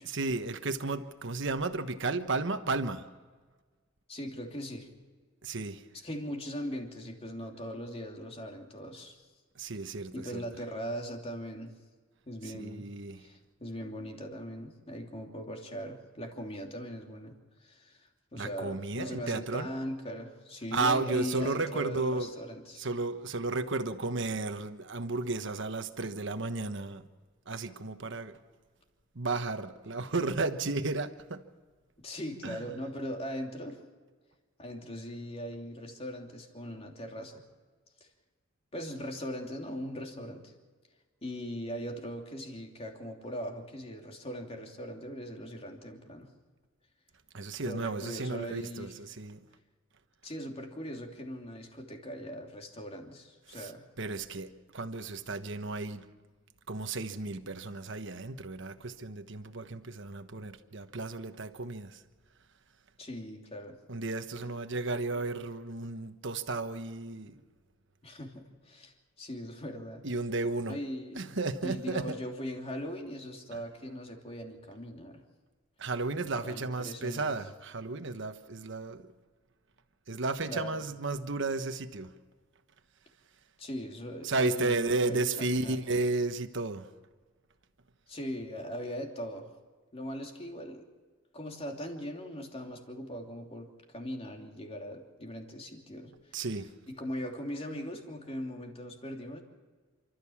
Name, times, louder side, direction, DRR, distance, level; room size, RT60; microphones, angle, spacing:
voice 1, 0.0-3.1 5.4-5.8 9.5-10.4 12.6-13.2 18.4-19.7 20.7-22.3 22.8-27.0 27.5-28.3 29.1-31.4 32.4-32.8 47.3-49.4 53.5-53.7 54.0-56.1 56.7-62.0 63.9-67.3 70.0-70.8 71.1-72.1 73.5-73.6 75.8-79.1 80.1-82.1 84.2-86.9 96.3-96.7, right 3 dB, 65° right, 1.3 m, -33 dB
voice 2, 4.1-4.9 6.0-9.2 10.1-11.7 12.3-12.9 13.2-22.9 32.0-33.8 34.6-37.4 38.7-40.5 41.2-46.3 47.6-48.9 50.2-53.8 63.0-63.8 68.0-70.0 70.7-71.3 71.6-75.2 76.4-77.3 80.5-80.8 83.6-85.8 88.1-89.5 89.9-90.9 91.3-93.7 93.9-96.4 96.9-99.4, equal, 30° left, 2.9 m, -40 dB
29.0 x 13.5 x 7.2 m
head